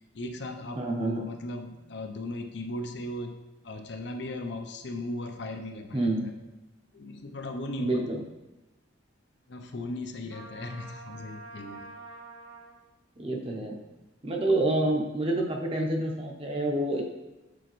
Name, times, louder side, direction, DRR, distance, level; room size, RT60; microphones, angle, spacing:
voice 1, 0.1-3.3 3.6-6.3 6.9-8.0 9.5-11.8, left 1 dB, 60° left, 4 dB, 0.6 m, -37 dB
voice 2, 0.8-1.3 5.9-6.3 7.8-8.2 13.2-13.8 14.2-17.0, right 1 dB, 30° right, 1 dB, 0.8 m, -28 dB
Trumpet, 10.3-12.8, right 2 dB, 75° right, 1.4 m, -46 dB
8.0 x 4.4 x 3.1 m, 1.1 s
head